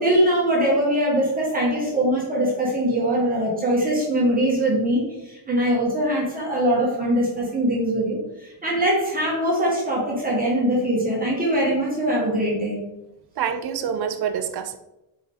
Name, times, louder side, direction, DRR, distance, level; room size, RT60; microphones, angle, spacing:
voice 1, 0.0-12.8, right 1 dB, 20° right, -5 dB, 1.7 m, -22 dB
voice 2, 13.4-14.8, right 8 dB, 55° right, 8 dB, 0.5 m, -26 dB
5.3 x 4.9 x 3.7 m, 0.92 s
cardioid pair, 170°, 48 cm